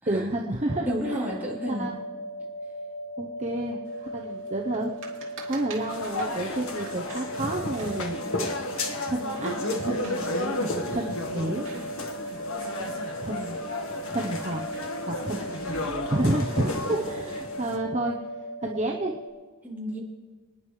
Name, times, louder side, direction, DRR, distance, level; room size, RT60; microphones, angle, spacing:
voice 1, 0.1-1.3 1.7-2.0 3.2-4.9 5.4-8.2 9.1-10.3 10.9-11.7 13.2-13.6 14.1-14.6 15.0-15.4 16.1-18.1 18.6-19.1, right 1 dB, 35° right, 0 dB, 0.8 m, -30 dB
sound 1, 0.7-19.3, equal, 50° right, 3.1 m, -38 dB
voice 2, 0.8-1.9 19.6-20.0, equal, 10° right, -7 dB, 3.7 m, -31 dB
sound 2, 3.8-16.9, right 4 dB, 70° right, 2.5 m, -48 dB
sound 3, 5.9-17.8, left 2 dB, 80° left, 1.6 m, -32 dB
27.5 x 10.0 x 3.2 m, 1.4 s
head